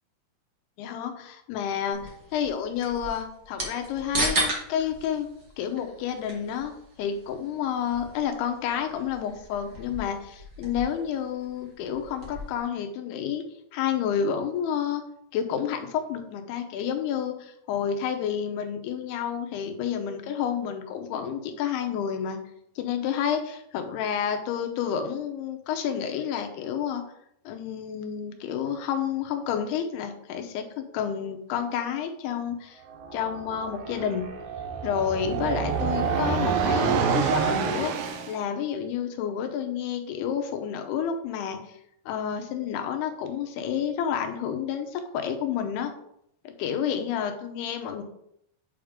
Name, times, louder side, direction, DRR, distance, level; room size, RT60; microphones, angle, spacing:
voice 1, 0.8-5.3 5.6-6.7 7.0-13.5 13.7-15.0 15.3-22.4 22.8-27.0 27.5-30.7 30.9-32.8 33.1-34.3 34.8-37.9 38.3-41.6 42.1-45.9 46.4-48.0, left 8 dB, 85° left, 5 dB, 2.8 m, -30 dB
sound 1, 1.9-12.6, right 1 dB, 45° right, 1.3 m, -36 dB
sound 2, 32.9-38.4, right 6 dB, 75° right, 2.1 m, -27 dB
7.9 x 3.6 x 4.9 m, 0.74 s
omnidirectional pair, 4.6 m